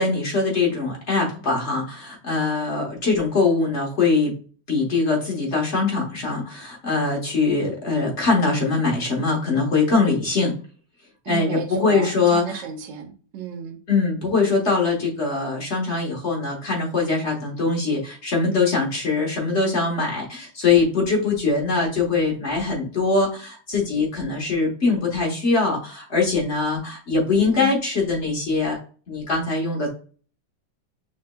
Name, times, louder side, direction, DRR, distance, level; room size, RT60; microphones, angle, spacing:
voice 1, 0.0-4.3 4.7-10.5 11.3-12.6 13.9-28.8 29.1-29.9, left 4 dB, 40° left, -1 dB, 1.1 m, -22 dB
voice 2, 11.2-13.8 27.5-27.7, right 6 dB, 65° right, 4 dB, 1.4 m, -33 dB
6.1 x 3.3 x 2.2 m, 0.40 s
omnidirectional pair, 2.3 m